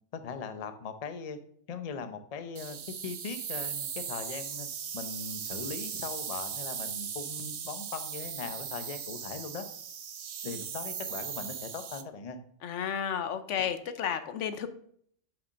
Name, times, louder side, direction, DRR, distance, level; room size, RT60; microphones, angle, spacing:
voice 1, 0.1-1.4 1.7-4.7 4.9-9.6 10.4-12.4, left 5 dB, 40° left, 8 dB, 0.7 m, -40 dB
sound 1, 2.6-12.0, right 7 dB, 65° right, 0.3 m, -38 dB
voice 2, 12.6-14.7, left 8 dB, 85° left, 10 dB, 1.0 m, -32 dB
5.7 x 5.2 x 6.3 m, 0.64 s
omnidirectional pair, 1.2 m